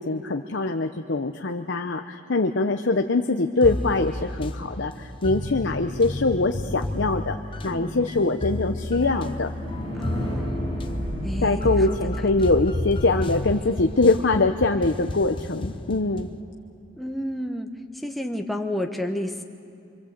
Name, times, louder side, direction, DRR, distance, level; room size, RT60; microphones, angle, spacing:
voice 1, 0.0-7.4 7.6-9.5 10.1-10.3 11.4-16.3, left 3 dB, 65° left, 4 dB, 0.8 m, -23 dB
sound 1, 3.6-16.4, left 1 dB, 25° left, 0.8 m, -32 dB
sound 2, 3.6-5.8 7.6-15.7, equal, 80° right, 5.1 m, -35 dB
voice 2, 9.9-10.5 11.2-12.3 17.0-17.7 18.0-19.4, left 1 dB, ahead, 3 dB, 1.1 m, -31 dB
25.5 x 25.0 x 8.2 m, 2.4 s
head